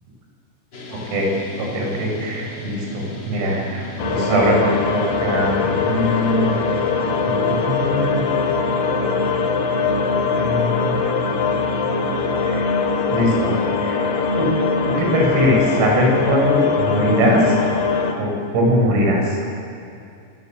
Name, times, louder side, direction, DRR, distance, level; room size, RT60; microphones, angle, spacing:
sound 1, 0.7-12.7, right 5 dB, 35° left, 2.3 m, -35 dB
voice 1, 0.9-6.7 7.2-8.2 10.4-10.9 12.4-12.7 13.1-14.5 14.9-17.6 18.2-19.4, equal, 90° right, -1 dB, 9.0 m, -21 dB
sound 2, 4.0-18.1, left 5 dB, 60° left, 3.6 m, -21 dB
25.5 x 24.5 x 7.7 m, 2.5 s
omnidirectional pair, 5.9 m